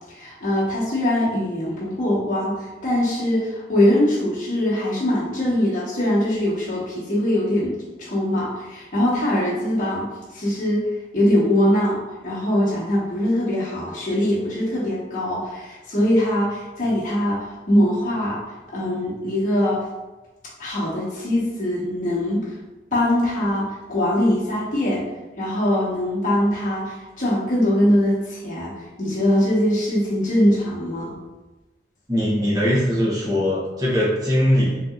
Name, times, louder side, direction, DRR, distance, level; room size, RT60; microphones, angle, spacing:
voice 1, 0.1-10.9 11.1-18.4 18.7-19.8 20.6-22.5 22.9-25.0 25.4-28.7 29.0-31.1, left 1 dB, 45° left, -7 dB, 1.1 m, -22 dB
voice 2, 32.1-34.8, equal, 20° right, -6 dB, 0.9 m, -21 dB
3.8 x 2.8 x 2.4 m, 1.1 s
head